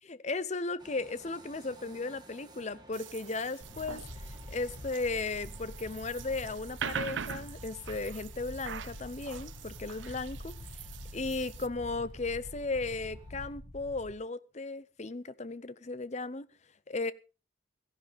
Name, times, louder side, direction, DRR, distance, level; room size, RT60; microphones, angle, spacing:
voice 1, 0.0-10.5 11.1-16.5 16.9-17.1, left 3 dB, 35° left, 0.7 m, -36 dB
sound 1, 0.8-13.5, right 1 dB, 20° right, 2.1 m, -57 dB
sound 2, 2.9-11.7, right 7 dB, 70° right, 0.6 m, -43 dB
sound 3, 3.6-14.1, left 1 dB, 60° left, 1.5 m, -46 dB
17.0 x 15.0 x 3.5 m
head